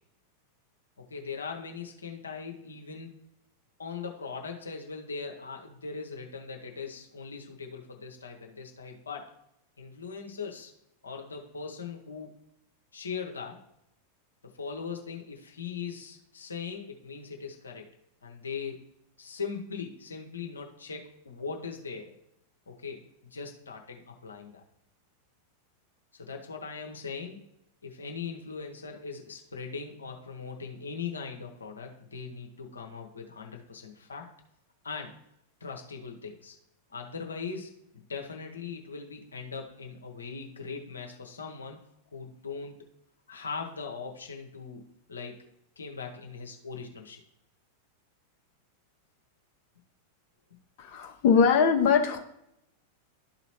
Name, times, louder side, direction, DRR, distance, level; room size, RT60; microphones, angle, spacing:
voice 1, 1.0-3.2 3.8-9.3 9.8-10.7 11.0-12.4 12.9-13.6 14.4-17.9 18.2-18.8 19.2-22.2 22.7-24.6 26.1-27.4 27.8-34.3 34.8-35.2 35.6-36.6 36.9-41.8 42.1-42.9 43.3-44.8 45.1-45.4 45.8-47.2, left 5 dB, 75° left, 2 dB, 0.9 m, -40 dB
voice 2, 50.8-52.2, left 6 dB, 45° left, 2 dB, 0.8 m, -22 dB
12.0 x 4.0 x 3.0 m, 0.79 s
figure-of-eight pair, 90°, 0 cm